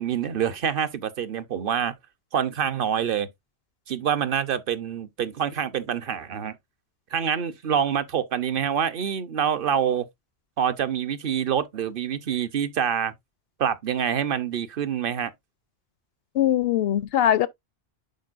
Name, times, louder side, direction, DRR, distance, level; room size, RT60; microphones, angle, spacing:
voice 1, 0.0-1.9 2.3-3.3 3.9-6.5 7.1-10.0 10.6-13.1 13.6-15.3, right 8 dB, 60° right, 0.8 m, -26 dB
voice 2, 16.3-17.5, left 11 dB, 70° left, 0.7 m, -21 dB
10.5 x 4.3 x 2.4 m
omnidirectional pair, 1.1 m